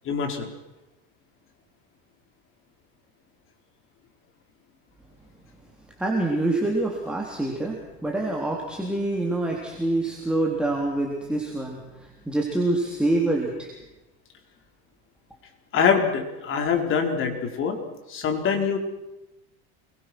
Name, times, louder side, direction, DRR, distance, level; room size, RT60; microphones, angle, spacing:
voice 1, 0.0-0.5 15.7-17.8 18.1-18.8, left 6 dB, 40° left, 4 dB, 4.5 m, -24 dB
voice 2, 6.0-13.7, right 2 dB, 5° right, -1 dB, 3.7 m, -26 dB
28.0 x 22.5 x 6.3 m, 0.99 s
supercardioid pair, 130°, 31 cm